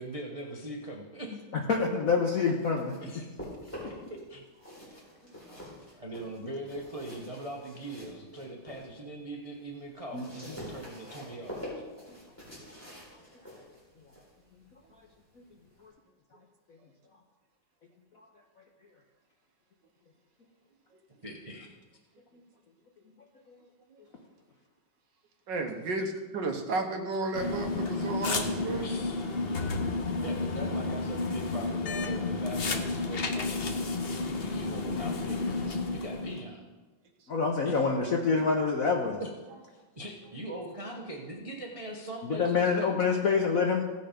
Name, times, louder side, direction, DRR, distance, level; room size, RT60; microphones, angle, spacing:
voice 1, 0.0-1.4 3.0-3.3 3.6-3.8 4.1-4.5 5.7-11.9 21.2-21.7 28.8-29.9 30.2-36.6 37.6-37.9 39.2-39.3 39.7-43.0, right 1 dB, 30° right, -2 dB, 0.6 m, -42 dB
voice 2, 1.5-2.9 10.1-10.2 15.8-15.9 37.3-39.2 42.2-43.8, left 5 dB, 60° left, 1 dB, 0.9 m, -26 dB
sound 1, 2.4-4.2 4.5-8.9 9.3-15.9, left 1 dB, 5° left, 3.9 m, -46 dB
voice 3, 25.5-29.0, right 3 dB, 65° right, 4 dB, 1.5 m, -33 dB
sound 2, 27.3-36.4, left 3 dB, 90° left, 0.5 m, -31 dB
16.0 x 5.4 x 5.1 m, 1.3 s
omnidirectional pair, 2.3 m